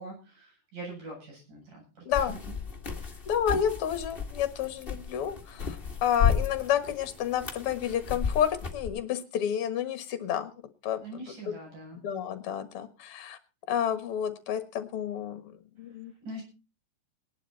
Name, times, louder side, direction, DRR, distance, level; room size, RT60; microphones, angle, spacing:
voice 1, 0.0-2.4 2.9-3.2 11.0-12.0 16.2-16.4, right 2 dB, 70° right, -1 dB, 9.7 m, -43 dB
voice 2, 2.1-2.4 3.3-10.5 10.8-11.0 12.0-13.4 13.7-15.5 15.8-16.1, left 9 dB, 50° left, 10 dB, 2.1 m, -30 dB
sound 1, 2.1-8.9, left 7 dB, 25° left, 1.3 m, -33 dB
19.5 x 11.5 x 4.2 m, 0.33 s
omnidirectional pair, 3.8 m